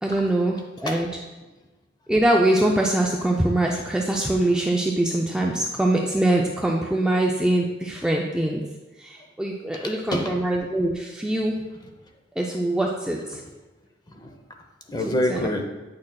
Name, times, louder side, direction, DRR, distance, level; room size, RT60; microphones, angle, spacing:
voice 1, 0.0-1.1 2.1-8.6 9.0-11.6 12.4-13.4 15.3-15.4, right 1 dB, 5° right, -1 dB, 0.4 m, -23 dB
voice 2, 9.7-10.4 11.5-11.9 13.3-13.5 14.1-14.4 14.9-15.7, left 1 dB, 20° left, 4 dB, 0.7 m, -29 dB
8.5 x 6.3 x 2.2 m, 1.2 s
head